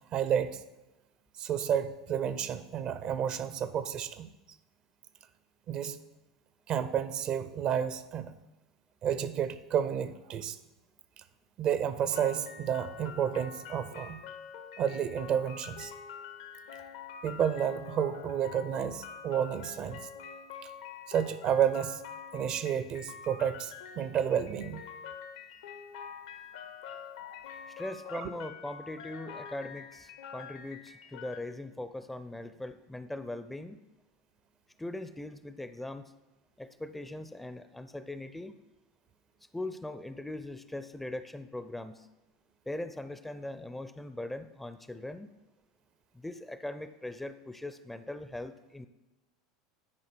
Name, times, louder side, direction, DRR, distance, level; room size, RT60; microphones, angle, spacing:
voice 1, 0.1-0.6 1.4-4.3 5.7-6.0 6.7-8.3 9.0-10.6 11.6-14.2 14.8-15.9 17.2-20.0 20.6-20.7 21.1-22.0 22.3-24.8 28.1-28.3, right 9 dB, 45° right, 13 dB, 0.5 m, -31 dB
sound 1, 12.1-31.4, left 7 dB, 70° left, 0.7 m, -46 dB
voice 2, 27.7-33.8 34.8-36.0 36.6-38.5 39.5-42.1 42.7-45.3 46.1-48.9, left 1 dB, 5° left, 11 dB, 0.4 m, -40 dB
9.7 x 5.0 x 4.4 m, 1.0 s
hypercardioid pair, 85°, 2 cm